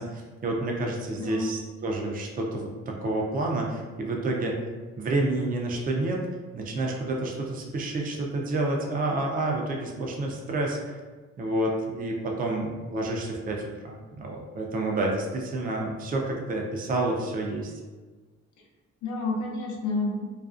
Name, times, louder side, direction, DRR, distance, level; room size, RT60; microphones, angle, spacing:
voice 1, 0.0-4.6 5.0-6.3 6.5-11.0 11.4-17.7, right 2 dB, 30° right, 0 dB, 0.4 m, -29 dB
voice 2, 1.1-1.6 18.6-18.7 19.0-20.3, left 3 dB, 75° left, -1 dB, 0.6 m, -30 dB
2.4 x 2.3 x 2.4 m, 1.3 s
cardioid pair, 90°, 30 cm